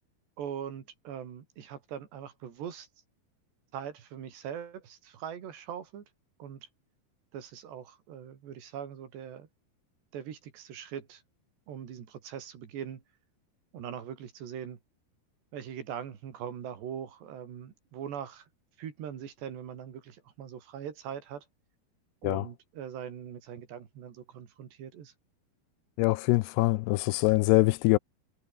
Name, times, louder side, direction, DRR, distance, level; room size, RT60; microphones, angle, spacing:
voice 1, 0.4-2.9 3.7-6.1 6.4-6.7 7.3-9.5 10.1-11.2 11.7-13.0 13.7-14.8 15.5-18.5 18.8-21.5 22.2-25.1, right 8 dB, 90° right, 5.3 m, -41 dB
voice 2, 26.0-28.0, left 22 dB, 85° left, 2.7 m, -24 dB
omnidirectional pair, 4.7 m